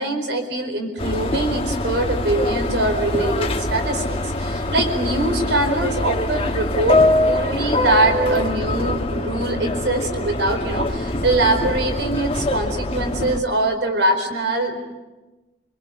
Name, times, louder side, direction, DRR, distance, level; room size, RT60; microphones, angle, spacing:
voice 1, 0.0-14.8, right 2 dB, 70° right, 6 dB, 4.6 m, -23 dB
Subway metro underground, 1.0-13.4, left 1 dB, 30° left, 1.5 m, -23 dB
27.0 x 24.0 x 8.3 m, 1.1 s
head